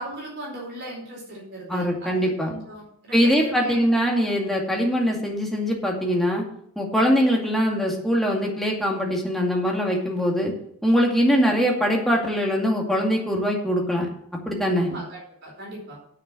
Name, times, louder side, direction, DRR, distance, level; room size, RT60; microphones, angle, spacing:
voice 1, 0.0-3.9 14.7-16.0, right 1 dB, 50° right, -2 dB, 4.6 m, -37 dB
voice 2, 1.7-2.5 3.1-6.4 6.8-10.5 10.8-14.1 14.5-14.9, equal, ahead, -2 dB, 2.3 m, -22 dB
8.6 x 6.6 x 7.8 m, 0.66 s
head